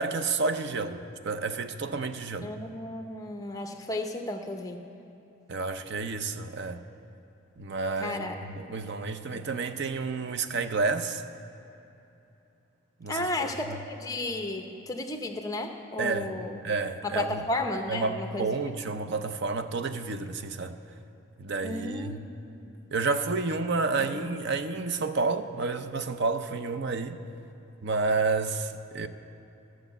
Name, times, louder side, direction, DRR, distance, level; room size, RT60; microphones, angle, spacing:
voice 1, 0.0-2.5 5.5-6.8 7.6-11.2 13.0-13.8 16.0-16.3 16.6-17.5 17.9-20.8 21.4-22.2 22.9-27.2 27.8-29.1, right 4 dB, 50° right, 0.5 m, -30 dB
voice 2, 2.4-4.8 8.0-8.4 9.3-9.4 13.1-16.6 17.0-18.5 21.6-22.2 22.6-22.7 24.1-24.4, left 2 dB, 15° left, 0.7 m, -33 dB
14.0 x 6.3 x 7.9 m
head